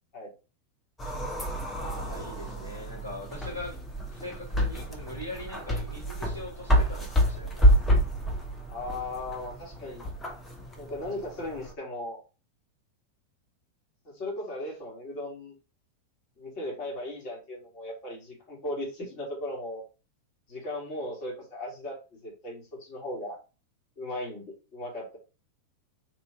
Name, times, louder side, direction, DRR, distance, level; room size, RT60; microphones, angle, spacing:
sound 1, 1.0-11.7, equal, 15° left, 0.7 m, -28 dB
voice 1, 1.7-3.8 4.1-7.7, left 1 dB, 85° left, -6 dB, 1.8 m, -41 dB
voice 2, 8.7-10.0 10.8-12.2 14.1-15.5 16.4-19.8 20.5-22.0 22.2-23.4 24.0-24.4 24.7-25.2, left 1 dB, 40° left, -2 dB, 1.6 m, -37 dB
3.1 x 2.6 x 3.4 m, 0.32 s
figure-of-eight pair, 90°, 0 cm